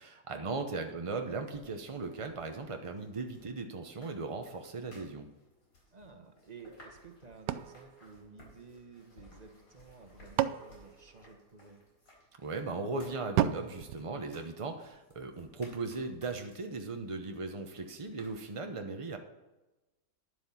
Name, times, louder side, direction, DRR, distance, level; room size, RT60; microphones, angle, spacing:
voice 1, 0.0-5.3 12.4-19.2, right 3 dB, 55° right, 5 dB, 0.3 m, -38 dB
sound 1, 0.8-18.6, left 1 dB, 85° left, 4.8 m, -60 dB
voice 2, 5.9-11.8, right 4 dB, 25° right, 5 dB, 1.1 m, -53 dB
sound 2, 7.5-9.0 9.9-11.9 13.4-15.0, right 12 dB, 75° right, 1.1 m, -35 dB
10.5 x 7.8 x 5.7 m, 1.1 s
omnidirectional pair, 1.9 m